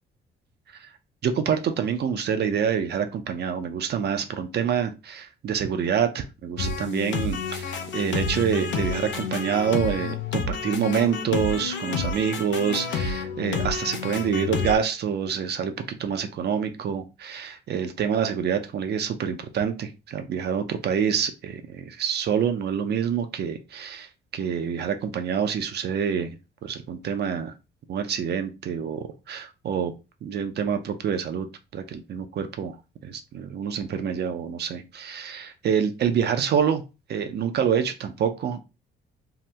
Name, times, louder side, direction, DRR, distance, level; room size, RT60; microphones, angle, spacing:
voice 1, 1.2-26.4 26.6-27.5 27.9-29.9 30.2-31.5 31.7-32.8 33.0-36.8 37.1-38.6, right 7 dB, 55° right, 8 dB, 0.5 m, -27 dB
sound 1, 6.6-14.7, left 5 dB, 65° left, 0.6 m, -29 dB
2.8 x 2.0 x 3.3 m, 0.28 s
cardioid pair, 90°, 20 cm